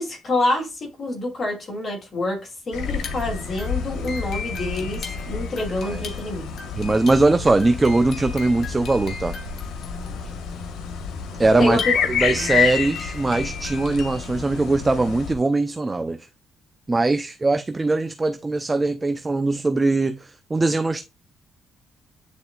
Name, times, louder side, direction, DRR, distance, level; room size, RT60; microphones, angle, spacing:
voice 1, 0.0-2.4 2.7-6.4 11.6-11.9 12.3-12.5, left 2 dB, 45° left, 2.7 m, -27 dB
sound 1, 2.7-15.4, left 6 dB, 80° left, 1.1 m, -29 dB
sound 2, 2.9-14.4, left 4 dB, 60° left, 1.7 m, -38 dB
voice 2, 6.8-9.3 11.4-11.8 12.1-16.3 16.9-21.0, right 2 dB, 20° right, 0.5 m, -21 dB
10.0 x 4.0 x 2.3 m
cardioid pair, 90°, 0 cm